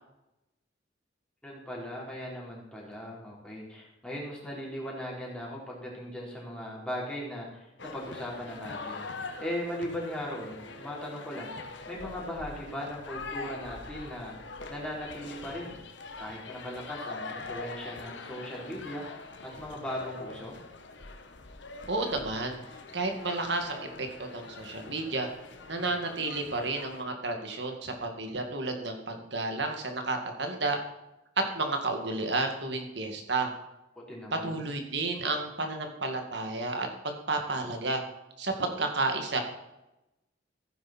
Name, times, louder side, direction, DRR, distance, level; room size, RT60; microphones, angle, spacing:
voice 1, 1.4-14.3 14.7-15.8 16.2-19.2 19.6-20.6 34.1-34.6, equal, 5° left, -4 dB, 3.8 m, -38 dB
sound 1, 7.8-27.0, left 3 dB, 70° left, 1.4 m, -43 dB
voice 2, 21.9-22.6 22.9-25.3 25.7-30.8 31.5-33.5 34.4-38.0 38.4-39.4, right 3 dB, 65° right, 4 dB, 2.2 m, -31 dB
16.0 x 9.5 x 4.4 m, 0.94 s
head